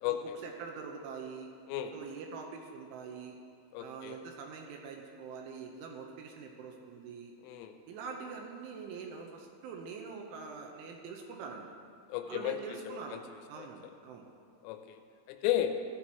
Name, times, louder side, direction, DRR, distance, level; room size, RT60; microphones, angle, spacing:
voice 1, 0.1-1.5 1.9-3.4 3.8-7.3 7.9-11.7 12.2-13.2 13.5-14.3, right 5 dB, 80° right, 1 dB, 3.1 m, -44 dB
voice 2, 3.7-4.2 7.4-7.7 12.1-13.2 13.6-13.7 14.6-15.0 15.3-15.7, left 12 dB, 85° left, 6 dB, 3.1 m, -34 dB
15.5 x 11.0 x 2.9 m, 2.3 s
omnidirectional pair, 5.9 m